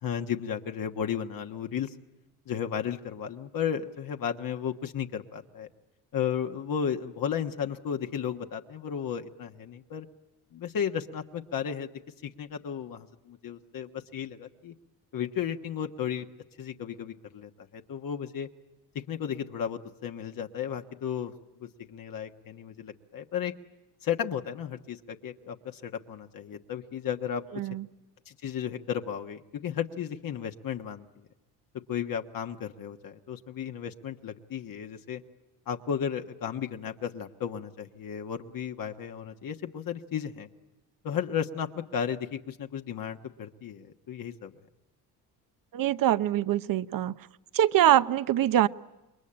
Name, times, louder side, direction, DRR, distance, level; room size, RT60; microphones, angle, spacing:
voice 1, 0.0-1.9 2.5-5.7 6.1-10.1 10.5-11.9 12.2-14.7 15.1-16.2 16.6-18.5 19.1-21.3 21.6-23.5 24.0-27.4 28.3-31.1 31.9-35.2 35.7-40.5 41.0-44.5, left 8 dB, 55° left, 5 dB, 1.4 m, -34 dB
voice 2, 27.5-27.9 45.7-47.1 47.5-48.7, right 12 dB, 55° right, 15 dB, 0.9 m, -23 dB
28.0 x 22.0 x 8.8 m, 1.0 s
supercardioid pair, 85°, 41 cm